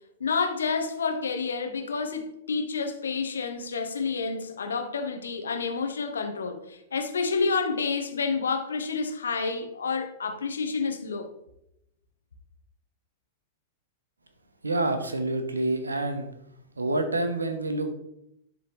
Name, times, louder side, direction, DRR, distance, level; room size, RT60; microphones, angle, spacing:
voice 1, 0.2-11.3, left 4 dB, 70° left, 0.9 m, -29 dB
voice 2, 14.6-16.3 16.8-17.9, right 2 dB, 80° right, 0.9 m, -27 dB
11.0 x 3.7 x 3.1 m
figure-of-eight pair, 100°, 0 cm